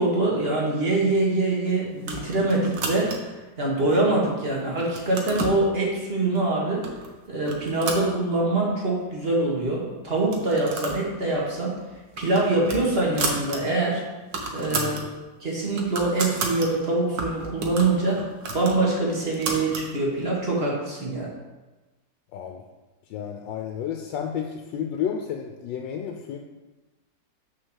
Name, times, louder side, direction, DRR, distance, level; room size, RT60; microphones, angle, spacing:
voice 1, 0.0-3.2 3.6-6.9 7.3-11.8 12.2-14.0 14.5-15.0 15.4-18.2 18.5-21.3, right 2 dB, 35° right, -3 dB, 1.7 m, -24 dB
sound 1, 2.0-3.4 4.0-4.5 4.8-5.6 6.4-6.5 6.8-7.1 7.4-8.7 9.0-9.1 9.3-9.4 10.2-11.1 11.4-11.6 11.9-13.6 13.9-14.0 14.2-15.0 15.5-16.7 17.2-19.9, right 3 dB, 75° right, 1.6 m, -32 dB
voice 2, 22.3-22.6 23.1-26.4, left 8 dB, 90° left, 3 dB, 1.3 m, -31 dB
6.3 x 4.1 x 6.3 m, 1.2 s
omnidirectional pair, 2.0 m